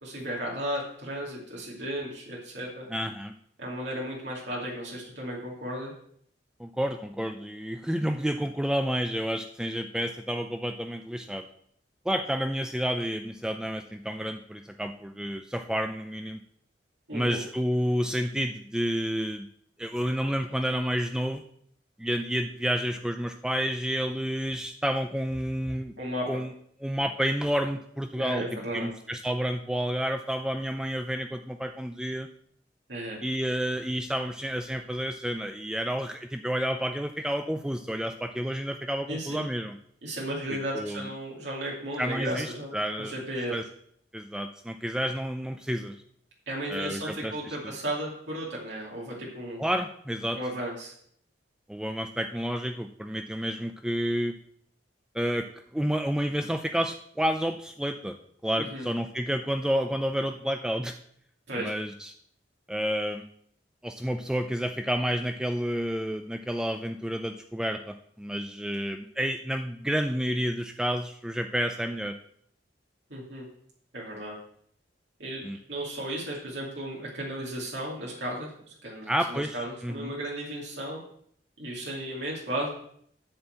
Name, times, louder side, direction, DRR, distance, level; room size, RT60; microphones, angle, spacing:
voice 1, 0.0-2.9 3.6-5.9 17.1-17.4 26.0-26.4 28.1-28.9 32.9-33.2 39.1-39.4 40.0-42.7 43.0-43.5 46.5-49.6 50.3-50.9 58.6-58.9 61.5-61.7 73.1-73.5 73.9-74.4 75.2-75.4 75.7-81.0 81.6-82.7, right 1 dB, 70° right, -4 dB, 2.6 m, -34 dB
voice 2, 2.9-3.3 6.6-11.4 12.1-16.4 17.1-19.5 19.8-21.4 22.0-25.9 26.3-26.5 26.8-28.4 28.7-32.3 33.2-39.8 40.5-41.0 42.0-43.1 43.5-43.6 44.1-46.0 46.7-47.7 49.6-50.4 51.7-54.3 55.1-58.2 58.4-60.9 61.6-62.1 62.7-63.2 63.8-72.1 75.4-75.6 79.1-80.1, equal, 5° right, 6 dB, 0.4 m, -30 dB
10.5 x 4.5 x 7.7 m, 0.66 s
head